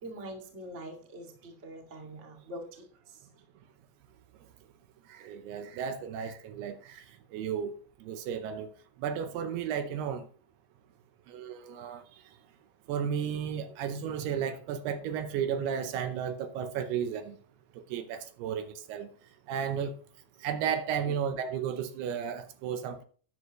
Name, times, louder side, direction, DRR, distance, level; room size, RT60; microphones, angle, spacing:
voice 1, 0.0-3.2 21.0-21.2, right 1 dB, 30° right, 1.4 m, -44 dB
voice 2, 5.1-7.1 7.3-7.8 8.0-8.7 9.0-10.3 11.3-12.0 12.9-17.4 17.9-19.1 19.5-20.0 20.4-23.0, right 8 dB, 80° right, 2.7 m, -33 dB
13.0 x 9.6 x 3.1 m
omnidirectional pair, 4.8 m